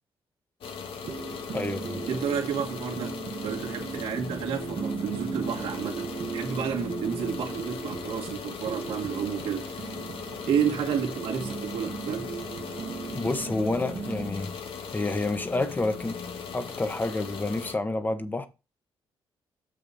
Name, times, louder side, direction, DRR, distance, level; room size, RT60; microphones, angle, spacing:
sound 1, 0.6-17.8, left 6 dB, 70° left, 1.5 m, -39 dB
sound 2, 1.0-14.3, right 6 dB, 60° right, 1.4 m, -38 dB
voice 1, 1.5-2.0 13.1-14.5 14.9-16.2 16.5-18.5, left 2 dB, 20° left, 1.3 m, -29 dB
voice 2, 2.1-3.2 3.4-9.9 10.5-12.3, right 7 dB, 90° right, 2.5 m, -31 dB
7.5 x 6.6 x 4.2 m
cardioid pair, 105°, 9 cm